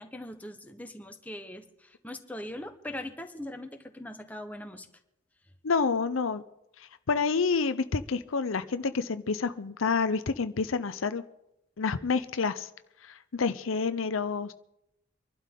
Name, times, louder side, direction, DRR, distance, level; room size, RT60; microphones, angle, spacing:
voice 1, 0.0-4.9, left 1 dB, 10° left, 5 dB, 1.1 m, -41 dB
voice 2, 5.6-6.4 7.1-11.2 11.8-12.7 13.3-14.5, left 5 dB, 80° left, 12 dB, 0.7 m, -28 dB
25.0 x 12.0 x 3.8 m, 0.86 s
head